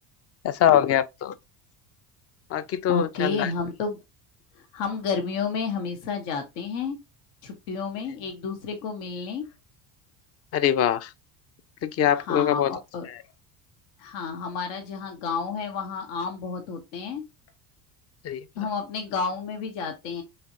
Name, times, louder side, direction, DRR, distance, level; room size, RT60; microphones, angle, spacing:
voice 1, 0.4-1.3 2.5-3.5 10.5-11.1 11.8-12.7 13.0-13.2 18.2-18.7, left 10 dB, 35° left, 0.4 m, -23 dB
voice 2, 2.9-4.0 4.7-7.0 7.4-9.4 12.1-13.1 14.0-17.2 18.6-20.2, left 5 dB, 75° left, 0.9 m, -31 dB
3.3 x 3.1 x 2.5 m
hypercardioid pair, 75°, 47 cm